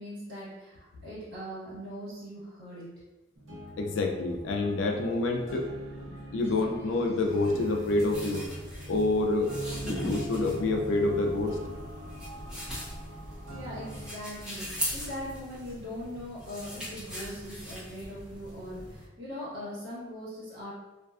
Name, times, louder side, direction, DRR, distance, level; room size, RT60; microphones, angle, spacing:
voice 1, 0.0-2.9 13.5-20.7, equal, 55° right, -9 dB, 1.2 m, -40 dB
sound 1, 3.4-14.1, equal, 85° right, 0.7 m, -43 dB
voice 2, 3.8-5.7 6.0-8.5 8.9-9.5 9.8-11.6, left 2 dB, 75° left, 3 dB, 0.3 m, -27 dB
sound 2, 7.3-19.0, equal, 5° right, 0.5 m, -40 dB
2.4 x 2.2 x 2.3 m, 1.1 s
head